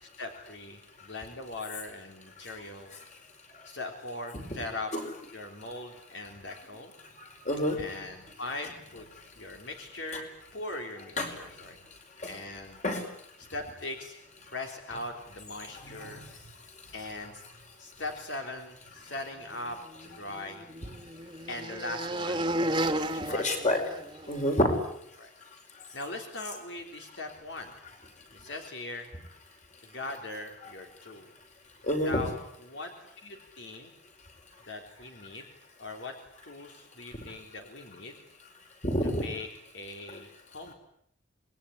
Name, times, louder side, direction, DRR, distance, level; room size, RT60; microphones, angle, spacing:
voice 1, 0.0-3.0 3.6-4.9 5.3-6.9 7.8-11.8 12.2-12.8 13.5-14.2 14.5-16.2 16.9-17.4 17.8-20.6 21.5-23.6 25.2-25.3 25.9-27.8 28.3-29.1 29.8-31.3 32.0-33.9 34.7-35.5 35.8-36.1 36.4-38.2 39.0-39.5 39.7-40.7, left 2 dB, 65° left, 4 dB, 3.5 m, -40 dB
voice 2, 7.2-7.8 9.2-9.3 11.2-11.7 12.2-12.3 12.8-13.1 15.8-16.3 23.2-23.8 24.3-24.7 25.8-25.9 31.8-32.2 38.8-39.3, left 1 dB, 35° left, 4 dB, 5.5 m, -29 dB
sound 1, 19.9-24.5, right 1 dB, 25° right, 1.8 m, -33 dB
27.0 x 21.5 x 10.0 m, 0.74 s
head